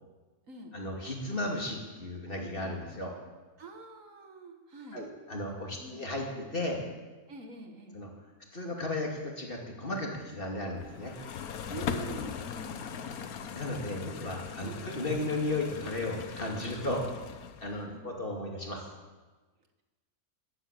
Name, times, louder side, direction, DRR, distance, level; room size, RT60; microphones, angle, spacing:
voice 1, 0.7-3.1 4.9-6.8 7.9-8.1 8.5-11.1 13.5-17.1 17.6-18.9, left 2 dB, 40° left, 0 dB, 2.8 m, -35 dB
voice 2, 3.6-5.0 5.8-6.0 7.3-8.0 11.7-13.3 14.6-14.7 17.9-18.1, right 3 dB, 65° right, 4 dB, 1.9 m, -46 dB
sound 1, 10.8-17.8, left 7 dB, 80° left, 1.4 m, -40 dB
12.5 x 12.0 x 8.5 m, 1.3 s
omnidirectional pair, 1.5 m